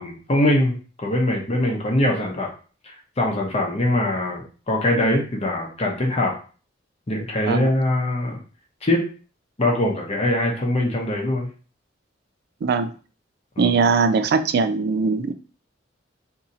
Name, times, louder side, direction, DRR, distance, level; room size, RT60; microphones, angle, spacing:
voice 1, 0.0-2.5 3.2-6.3 7.1-8.4 8.8-9.1 9.6-11.5 13.6-13.7, left 1 dB, 35° left, 0 dB, 0.7 m, -22 dB
voice 2, 13.6-15.3, right 4 dB, 55° right, 11 dB, 0.3 m, -20 dB
2.7 x 2.6 x 4.0 m, 0.38 s
head